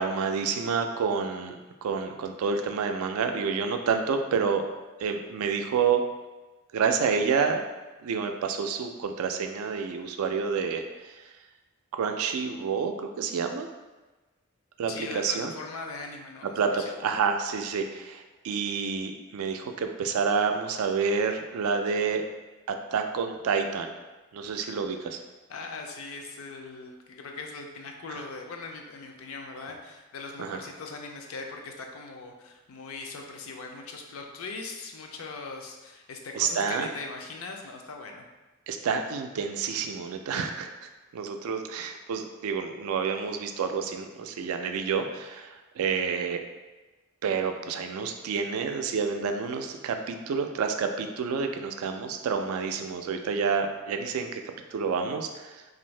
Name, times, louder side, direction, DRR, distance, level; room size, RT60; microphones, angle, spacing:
voice 1, 0.0-1.5 1.8-4.7 5.0-6.1 6.7-7.6 8.0-11.3 11.9-13.7 14.8-15.5 16.6-22.2 22.7-23.9 24.3-25.2 28.1-28.2 30.4-30.6 36.3-36.9 38.7-40.7 41.1-46.4 47.2-54.4 54.7-55.6, right 5 dB, 80° right, 6 dB, 0.3 m, -29 dB
voice 2, 14.9-17.0 25.5-38.2, left 3 dB, 75° left, 2 dB, 0.4 m, -40 dB
2.6 x 2.5 x 3.1 m, 1.2 s
head